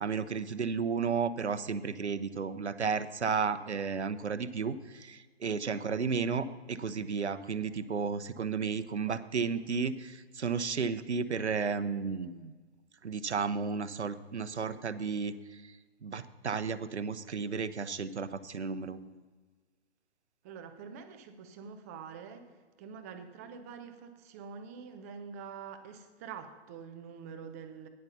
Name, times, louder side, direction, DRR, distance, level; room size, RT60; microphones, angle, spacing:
voice 1, 0.0-12.5 13.0-15.6 16.0-19.2, right 5 dB, 85° right, 13 dB, 0.7 m, -33 dB
voice 2, 20.4-27.9, right 6 dB, 15° right, 7 dB, 0.5 m, -46 dB
9.7 x 7.9 x 5.6 m, 1.4 s
figure-of-eight pair, 130°, 33 cm